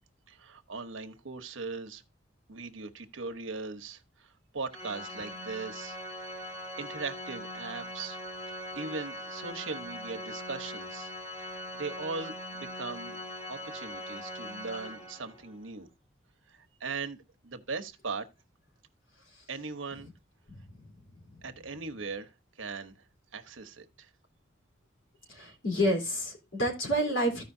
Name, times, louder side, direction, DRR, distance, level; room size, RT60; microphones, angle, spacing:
voice 1, 0.3-2.0 2.5-6.3 6.8-8.2 8.5-11.1 11.4-13.2 13.5-15.9 16.5-18.3 19.5-20.1 21.4-22.3 22.6-23.0 23.3-24.1 25.5-25.6, right 4 dB, 85° right, 1.1 m, -39 dB
Organ, 4.7-15.5, equal, 30° left, 2.4 m, -41 dB
voice 2, 25.3-27.4, equal, 75° left, 3.7 m, -29 dB
15.0 x 5.2 x 2.7 m
head